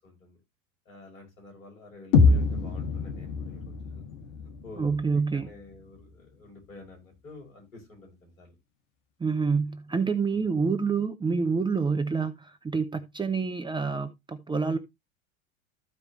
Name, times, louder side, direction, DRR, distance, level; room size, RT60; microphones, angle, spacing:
voice 1, 0.0-0.4 0.8-3.7 4.6-8.5 10.3-10.5, left 3 dB, 75° left, 6.8 m, -49 dB
sound 1, 2.1-6.1, left 4 dB, 55° left, 2.4 m, -26 dB
voice 2, 4.8-5.5 9.2-14.8, right 5 dB, 10° right, 1.0 m, -27 dB
14.5 x 4.9 x 3.2 m
hypercardioid pair, 90°, 41 cm